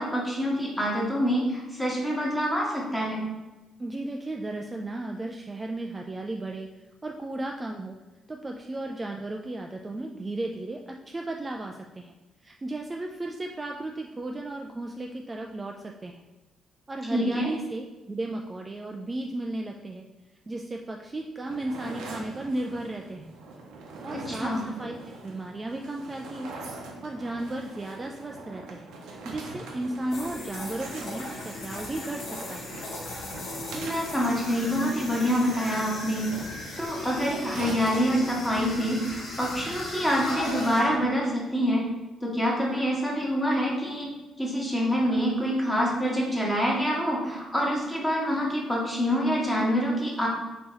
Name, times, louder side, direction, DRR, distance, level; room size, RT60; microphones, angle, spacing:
voice 1, 0.0-3.2 17.1-17.5 24.1-24.6 33.7-36.3 36.8-41.9 42.2-44.1 44.4-50.3, equal, 5° left, -3 dB, 1.3 m, -26 dB
voice 2, 3.8-6.7 7.0-8.0 8.3-12.1 12.4-16.2 16.9-20.0 20.5-23.3 24.0-26.6 27.0-32.7, right 2 dB, 25° right, 1 dB, 0.3 m, -35 dB
sound 1, 21.4-38.8, right 3 dB, 85° right, 0.7 m, -43 dB
sound 2, 30.1-41.0, left 2 dB, 70° left, 1.0 m, -37 dB
3.7 x 2.8 x 4.2 m, 1.1 s
cardioid pair, 90°, 0 cm